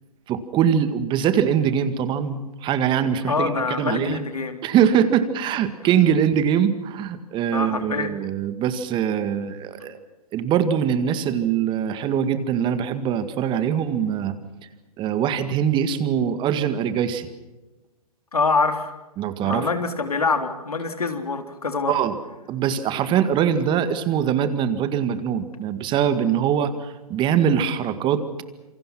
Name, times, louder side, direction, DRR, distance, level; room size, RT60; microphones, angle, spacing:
voice 1, 0.3-4.2 4.6-10.0 10.3-14.3 15.0-17.3 19.2-19.7 21.9-22.2 22.5-28.4, right 8 dB, 25° right, 11 dB, 1.9 m, -22 dB
voice 2, 3.3-4.6 7.5-8.1 18.3-18.9 19.4-22.0, left 4 dB, 75° left, 7 dB, 3.5 m, -25 dB
27.5 x 26.0 x 6.0 m, 1.1 s
figure-of-eight pair, 115°, 19 cm